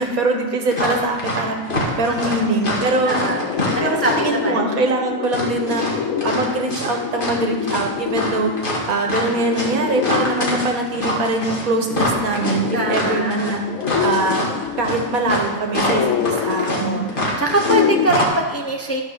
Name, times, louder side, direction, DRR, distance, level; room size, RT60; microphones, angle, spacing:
voice 1, 0.0-1.6 2.0-3.2 3.8-5.9 6.2-8.5 8.9-13.6 14.0-14.5 14.8-17.3, right 2 dB, 85° right, 3 dB, 1.7 m, -22 dB
sound 1, 0.7-1.4 1.7-4.4 5.2-7.4 7.7-17.8 18.1-18.3, left 1 dB, 40° left, 2.0 m, -24 dB
sound 2, 1.9-18.1, left 8 dB, 75° left, 1.0 m, -27 dB
voice 2, 3.1-3.4 3.7-4.7 9.0-9.4 12.7-13.6 16.6-19.0, right 2 dB, 15° left, 1 dB, 0.6 m, -24 dB
12.5 x 4.7 x 6.6 m, 1.4 s
omnidirectional pair, 1.4 m